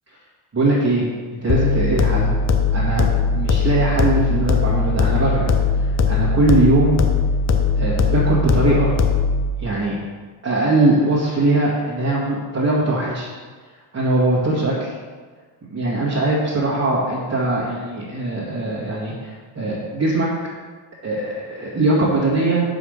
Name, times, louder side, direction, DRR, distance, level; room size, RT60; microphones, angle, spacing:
voice 1, 0.5-2.3 2.7-3.1 3.3-5.5 6.1-7.0 7.8-8.9 9.6-10.0 10.4-13.3 13.9-14.9 15.7-20.3 21.0-22.6, right 2 dB, 30° right, -7 dB, 1.9 m, -20 dB
sound 1, 1.5-9.5, left 5 dB, 35° left, 0.7 m, -19 dB
5.3 x 4.8 x 6.4 m, 1.5 s
cardioid pair, 110°, 47 cm